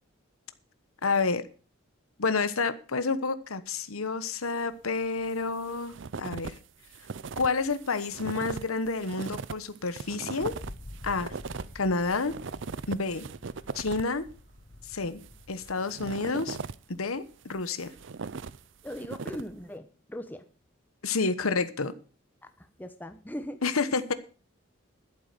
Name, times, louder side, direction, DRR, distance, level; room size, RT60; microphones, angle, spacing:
voice 1, 1.0-1.4 2.2-6.5 7.4-10.5 11.0-11.3 11.7-12.3 12.9-13.2 13.7-14.2 14.9-15.2 15.5-16.6 16.9-17.9 21.0-21.9 23.6-24.1, left 4 dB, 90° left, 13 dB, 1.2 m, -29 dB
sound 1, 5.2-6.6 6.8-14.2 15.0-16.9 17.4-19.6, right 4 dB, 60° right, 0.5 m, -39 dB
Wind, 10.3-15.9, left 1 dB, 35° left, 1.0 m, -48 dB
voice 2, 18.8-20.5 22.4-23.6, equal, 10° left, 8 dB, 1.0 m, -40 dB
11.5 x 8.4 x 6.7 m, 0.38 s
head